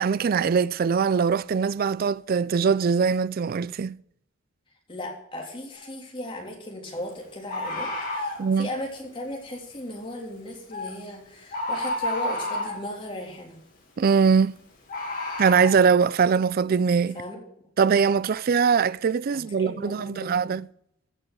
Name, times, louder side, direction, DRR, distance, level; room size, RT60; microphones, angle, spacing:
voice 1, 0.0-3.9 8.4-8.7 14.0-14.6 15.4-17.2 17.8-20.7, right 6 dB, 45° right, 0.3 m, -22 dB
voice 2, 4.9-13.6 17.1-17.4 19.3-20.6, left 1 dB, 25° left, 3.4 m, -37 dB
Bird, 5.8-5.9 7.5-8.4 10.7-10.9 11.5-12.9 14.9-15.7, left 1 dB, 45° left, 5.5 m, -30 dB
15.5 x 6.2 x 6.3 m
head